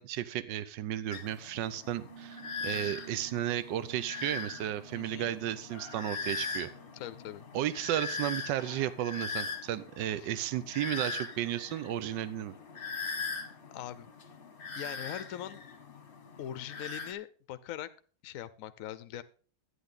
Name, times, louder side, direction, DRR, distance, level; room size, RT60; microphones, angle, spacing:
voice 1, 0.0-6.7 7.5-12.6, right 12 dB, 80° right, 15 dB, 1.3 m, -34 dB
sound 1, 1.1-17.1, left 4 dB, 35° left, 1.0 m, -41 dB
Piano, 2.1-10.6, right 9 dB, 25° right, 0.8 m, -56 dB
voice 2, 4.9-5.3 6.9-7.5 10.2-10.3 13.7-14.1 14.7-15.6 16.4-17.9 18.2-19.2, left 11 dB, 60° left, 13 dB, 0.9 m, -41 dB
11.5 x 9.7 x 3.9 m, 0.40 s
omnidirectional pair, 2.0 m